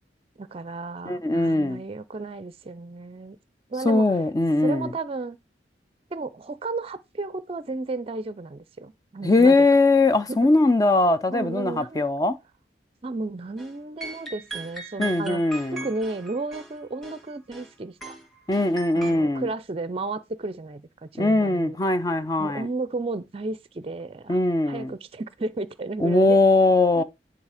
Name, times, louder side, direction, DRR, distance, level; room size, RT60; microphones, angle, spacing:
voice 1, 0.4-3.4 3.7-4.2 4.6-5.4 6.1-9.7 10.3-10.5 11.3-12.0 13.0-15.4 15.7-18.0 18.9-21.8 22.4-24.4 24.7-26.4 26.9-27.0, right 3 dB, 35° right, 0.5 m, -33 dB
voice 2, 1.1-1.8 3.8-4.9 9.2-12.4 15.0-15.9 18.5-19.5 21.2-22.7 24.3-24.9 26.0-27.0, left 2 dB, 20° left, 0.5 m, -20 dB
sound 1, 13.6-13.7 14.0-17.7 18.0-19.1, right 3 dB, ahead, 1.7 m, -39 dB
9.9 x 4.0 x 4.9 m
head